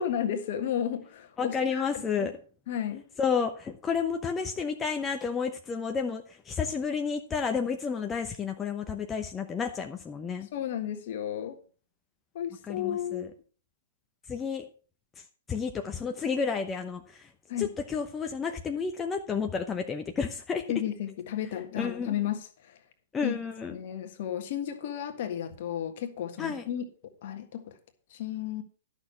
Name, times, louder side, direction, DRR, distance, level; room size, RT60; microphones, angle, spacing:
voice 1, 0.0-2.3 2.7-3.0 10.5-11.6 12.3-13.3 17.5-17.7 20.7-22.8 23.2-23.4 23.7-26.8 27.2-27.7 28.1-28.6, left 10 dB, 50° left, 8 dB, 1.6 m, -33 dB
voice 2, 1.4-2.4 3.2-10.5 12.7-13.3 14.3-14.7 15.2-17.3 17.6-20.6 21.8-22.1 23.1-23.8 26.4-26.6, left 6 dB, 15° left, 5 dB, 0.8 m, -31 dB
12.0 x 6.4 x 5.6 m, 0.40 s
figure-of-eight pair, 110°, 0 cm